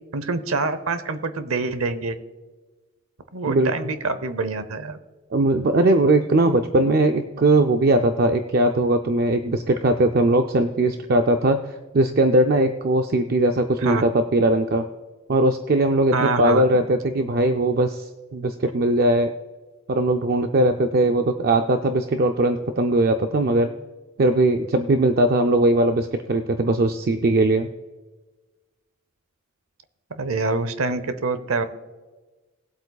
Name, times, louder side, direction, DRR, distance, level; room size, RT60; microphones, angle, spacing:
voice 1, 0.1-2.1 3.3-5.0 13.8-14.0 16.1-16.8 30.1-31.6, right 3 dB, 70° right, 12 dB, 0.8 m, -25 dB
voice 2, 5.3-14.9 15.3-19.3 19.9-23.7 24.2-27.7, right 2 dB, 45° right, 6 dB, 0.4 m, -20 dB
20.0 x 8.0 x 2.3 m, 1.2 s
head